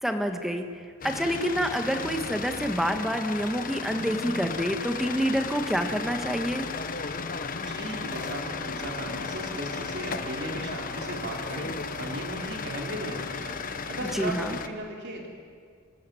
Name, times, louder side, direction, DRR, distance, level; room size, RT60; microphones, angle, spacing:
voice 1, 0.0-0.7 1.0-6.7 14.1-14.6, equal, ahead, 5 dB, 1.5 m, -27 dB
sound 1, 1.0-14.7, left 4 dB, 40° left, 1.1 m, -35 dB
voice 2, 7.6-13.6 13.9-15.3, right 1 dB, 55° right, 1 dB, 3.2 m, -36 dB
26.5 x 13.5 x 9.3 m, 2.1 s
head